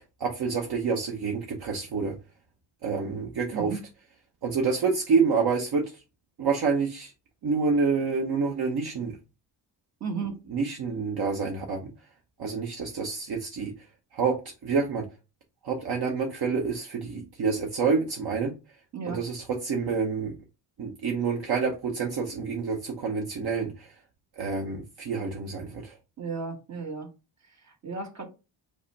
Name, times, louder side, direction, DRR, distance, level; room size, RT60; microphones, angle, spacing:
voice 1, 0.2-2.1 2.8-3.8 4.4-5.8 6.4-7.1 7.4-9.2 10.5-11.9 12.4-13.7 14.1-15.1 15.6-18.5 19.1-20.3 20.8-23.9 24.4-25.9, right 5 dB, 55° right, 0.9 m, -28 dB
voice 2, 3.5-3.8 10.0-10.4 18.9-19.2 26.2-27.1 27.8-28.3, right 5 dB, 35° right, 1.3 m, -33 dB
5.4 x 2.2 x 4.0 m
wide cardioid pair, 160°, 46 cm